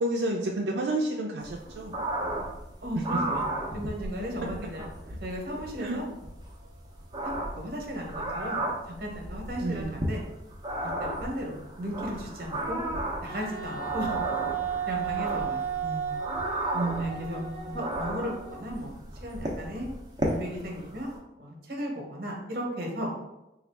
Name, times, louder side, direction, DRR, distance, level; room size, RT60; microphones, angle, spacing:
voice 1, 0.0-1.9 2.9-3.2 5.1-5.2 5.8-6.0 9.6-10.0 15.8-16.5 16.7-17.8, right 2 dB, 85° right, -1 dB, 0.4 m, -31 dB
sound 1, 1.4-21.2, right 1 dB, 25° right, 0.6 m, -35 dB
voice 2, 2.8-3.4 3.7-4.9 5.2-6.0 7.2-8.6 9.0-10.2 11.0-12.8 13.2-14.2 14.9-15.6 17.0-17.4 17.7-19.9 20.2-21.1 21.4-23.1, equal, 55° right, 0 dB, 0.9 m, -35 dB
Wind instrument woodwind instrument, 13.3-18.8, right 8 dB, 20° left, 0.6 m, -34 dB
3.9 x 2.4 x 3.3 m, 0.91 s
head